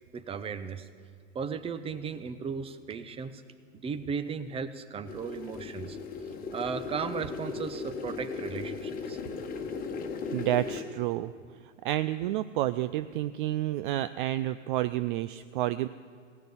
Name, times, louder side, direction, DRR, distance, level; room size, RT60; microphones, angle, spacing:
voice 1, 0.1-0.9 1.3-3.4 3.8-6.0 6.5-9.2, right 6 dB, 15° right, 11 dB, 0.7 m, -36 dB
sound 1, 5.1-10.8, left 5 dB, 25° left, 1.5 m, -37 dB
voice 2, 10.3-11.3 11.8-15.9, right 14 dB, 45° right, 13 dB, 0.4 m, -30 dB
17.0 x 6.6 x 9.7 m, 2.1 s
hypercardioid pair, 105°, 36 cm